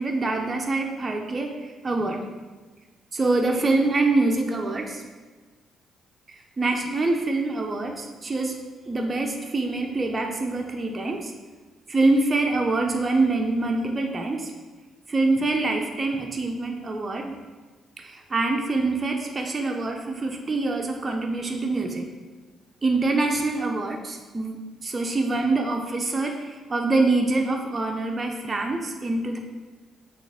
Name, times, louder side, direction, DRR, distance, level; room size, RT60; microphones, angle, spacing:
voice 1, 0.0-2.3 3.1-5.0 6.3-8.6 8.9-11.3 11.9-14.5 15.1-17.3 18.0-22.1 22.8-29.4, right 2 dB, 30° right, 2 dB, 0.5 m, -25 dB
6.2 x 2.4 x 3.4 m, 1.3 s
cardioid pair, 90°, 0 cm